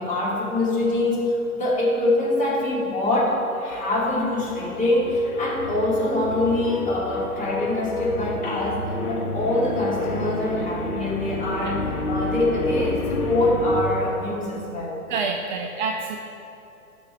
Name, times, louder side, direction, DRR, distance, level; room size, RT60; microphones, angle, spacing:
voice 1, 0.0-15.0, left 1 dB, 15° left, -6 dB, 2.9 m, -24 dB
sound 1, 3.7-13.8, left 2 dB, 75° left, 1.4 m, -30 dB
voice 2, 15.1-16.2, right 4 dB, 35° right, 3 dB, 0.7 m, -28 dB
17.0 x 6.3 x 4.4 m, 2.9 s
figure-of-eight pair, 115°, 44 cm